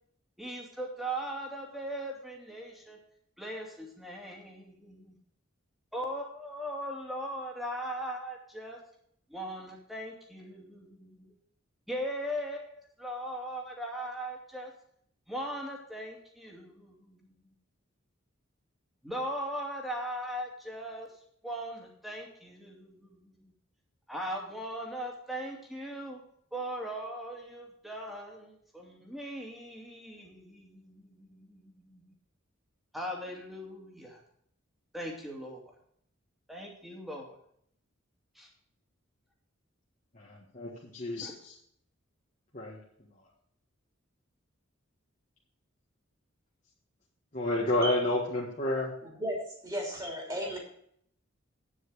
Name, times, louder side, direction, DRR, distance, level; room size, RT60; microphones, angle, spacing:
voice 1, 0.4-3.0 3.4-5.2 5.9-8.8 9.3-11.3 11.9-14.7 15.3-17.4 19.0-21.1 21.4-23.5 24.1-26.2 26.5-32.1 32.9-34.2 34.9-35.6 36.5-37.4 38.3-38.5 41.2-41.3, equal, ahead, -1 dB, 2.5 m, -39 dB
voice 2, 47.3-48.9, left 1 dB, 40° left, -5 dB, 1.7 m, -29 dB
voice 3, 49.0-50.6, equal, 20° right, -1 dB, 3.3 m, -35 dB
9.4 x 7.5 x 6.4 m, 0.67 s
head